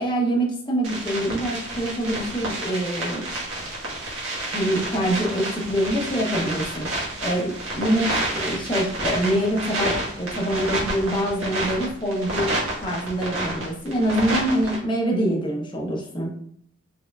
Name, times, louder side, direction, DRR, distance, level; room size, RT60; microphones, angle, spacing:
voice 1, 0.0-3.2 4.5-6.9 7.2-12.5 12.8-16.3, right 1 dB, 25° left, -1 dB, 0.8 m, -25 dB
sound 1, 0.8-14.8, right 1 dB, 85° right, 1.4 m, -29 dB
4.4 x 3.6 x 2.3 m, 0.68 s
head